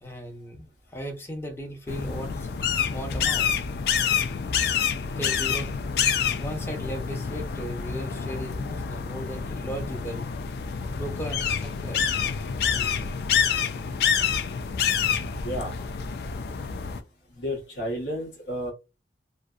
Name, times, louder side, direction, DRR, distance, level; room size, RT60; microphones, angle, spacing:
voice 1, 0.0-2.5 2.7-3.5 5.2-5.8 6.4-10.3 10.9-12.0, equal, 15° left, 0.6 m, -36 dB
sound 1, 1.9-17.0, left 7 dB, 60° left, 0.3 m, -27 dB
voice 2, 14.9-15.7 17.4-18.7, equal, 85° left, 0.8 m, -32 dB
2.6 x 2.1 x 2.3 m
head